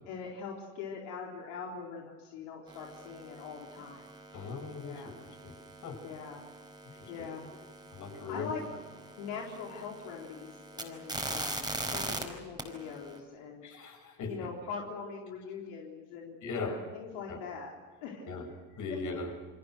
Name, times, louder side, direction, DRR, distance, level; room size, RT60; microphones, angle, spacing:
voice 1, 0.1-4.0 4.8-5.1 6.0-6.4 7.1-7.4 8.3-8.6 9.2-13.6 14.2-17.7 18.0-18.3 18.9-19.0, left 5 dB, 75° left, -1 dB, 4.1 m, -42 dB
sound 1, 2.7-12.2 12.6-13.2, right 2 dB, 10° right, 4.7 m, -42 dB
voice 2, 4.3-5.1 5.4-5.5 5.8-6.0 7.0-7.1 7.9-8.5 13.6-14.3 16.4-16.7 17.3-17.4 18.2-18.4 18.8-19.3, left 4 dB, 45° left, 4 dB, 7.9 m, -38 dB
29.0 x 23.5 x 6.8 m, 1.3 s
supercardioid pair, 110°, 40 cm